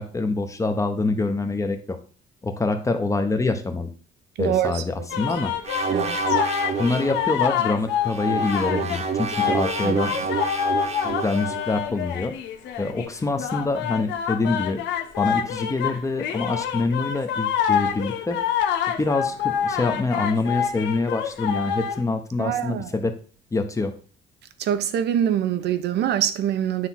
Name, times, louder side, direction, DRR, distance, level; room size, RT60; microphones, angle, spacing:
voice 1, 0.0-2.0 2.4-3.9 4.4-5.5 6.8-10.1 11.0-12.3 12.8-14.8 15.2-18.4 19.0-23.1 23.5-24.0, left 3 dB, 15° left, 1.2 m, -25 dB
voice 2, 4.4-5.2 5.9-6.2 9.8-10.0 22.4-22.9 24.6-26.9, right 10 dB, 70° right, 0.9 m, -25 dB
sound 1, 5.1-9.0 9.3-13.1 13.4-22.0, left 8 dB, 90° left, 1.1 m, -26 dB
sound 2, 5.6-7.3 8.0-11.7, right 5 dB, 35° right, 1.1 m, -28 dB
9.6 x 3.5 x 6.0 m
cardioid pair, 125°, 18 cm